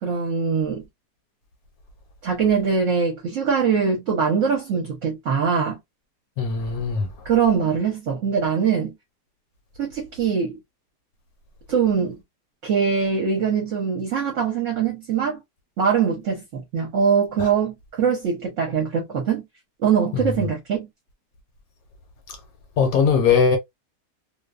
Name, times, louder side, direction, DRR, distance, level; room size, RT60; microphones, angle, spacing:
voice 1, 0.0-0.8 2.2-5.8 7.2-8.9 9.8-10.6 11.7-12.2 12.6-15.4 15.8-19.5 19.8-20.9, right 6 dB, 55° right, 1.0 m, -22 dB
voice 2, 6.4-7.1 17.4-17.5 20.1-20.2 22.3-22.4 22.8-23.6, left 6 dB, 70° left, 1.0 m, -20 dB
2.6 x 2.2 x 2.3 m
omnidirectional pair, 1.8 m